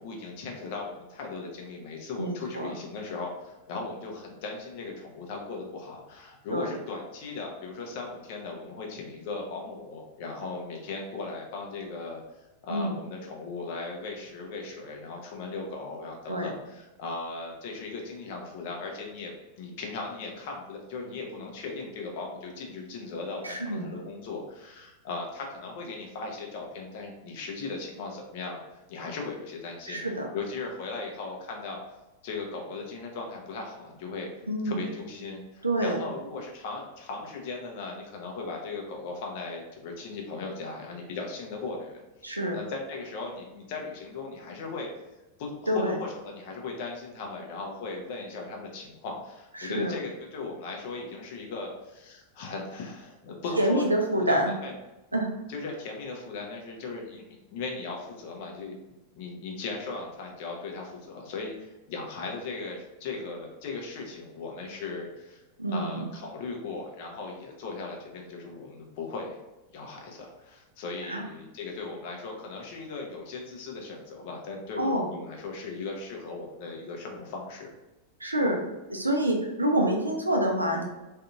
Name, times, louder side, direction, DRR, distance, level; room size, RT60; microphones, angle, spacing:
voice 1, 0.0-12.2 12.6-19.3 19.6-30.0 30.3-31.8 32.2-34.3 34.6-44.9 45.4-53.9 54.1-54.7 55.5-57.2 57.5-65.4 65.7-69.4 69.7-77.7, left 3 dB, 50° left, 0 dB, 0.7 m, -38 dB
voice 2, 2.2-2.7 6.5-6.7 12.7-12.9 16.3-16.5 23.4-23.8 29.9-30.3 34.5-34.8 35.6-36.0 42.2-42.6 45.7-45.9 49.6-49.9 53.6-54.5 55.1-55.3 65.6-66.1 71.1-71.2 74.8-75.1 78.2-78.6 78.9-80.8, right 1 dB, 80° right, 2 dB, 0.5 m, -27 dB
3.8 x 2.7 x 2.3 m, 1.0 s
figure-of-eight pair, 90°, 0 cm